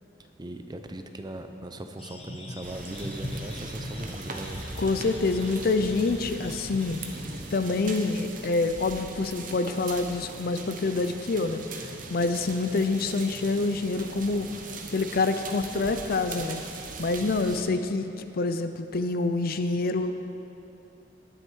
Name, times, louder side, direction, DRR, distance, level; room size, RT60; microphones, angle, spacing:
voice 1, 0.4-4.6 17.5-17.8, right 1 dB, 25° right, 6 dB, 0.6 m, -39 dB
sound 1, 2.0-7.6, left 1 dB, 35° left, 1.1 m, -41 dB
sound 2, 2.6-17.6, right 3 dB, 45° right, 0.9 m, -40 dB
voice 2, 4.8-7.0 7.5-11.6 12.1-14.5 14.9-16.6 17.0-20.1, left 3 dB, 55° left, 9 dB, 0.5 m, -26 dB
19.0 x 6.6 x 4.6 m, 2.8 s
head